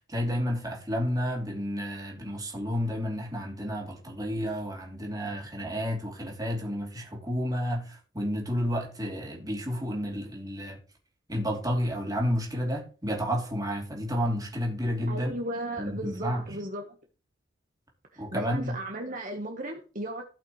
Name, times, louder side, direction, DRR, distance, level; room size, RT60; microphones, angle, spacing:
voice 1, 0.1-10.8 11.3-15.4 15.8-16.5 18.2-18.8, equal, 20° right, 2.8 m, -31 dB
voice 2, 15.1-16.9 18.1-20.2, right 1 dB, 45° right, 1.2 m, -35 dB
16.5 x 5.7 x 3.1 m
head